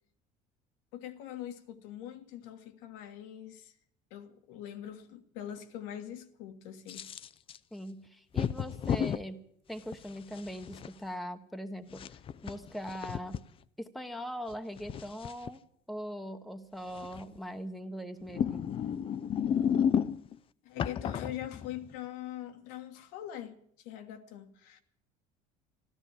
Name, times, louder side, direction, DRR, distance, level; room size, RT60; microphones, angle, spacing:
voice 1, 0.9-3.7 4.1-7.1 20.6-24.8, left 11 dB, 80° left, 1.6 m, -43 dB
sound 1, 6.9-7.6 8.4-9.2 9.9-10.9 11.9-13.4 14.5-15.5 17.0-17.4 18.2-20.4 20.8-21.9, left 8 dB, 35° left, 0.5 m, -32 dB
voice 2, 7.7-9.4 9.7-12.0 12.4-13.4 13.8-15.6 15.9-18.6, equal, ahead, 1.1 m, -41 dB
13.5 x 12.5 x 7.3 m
cardioid pair, 120°, 17 cm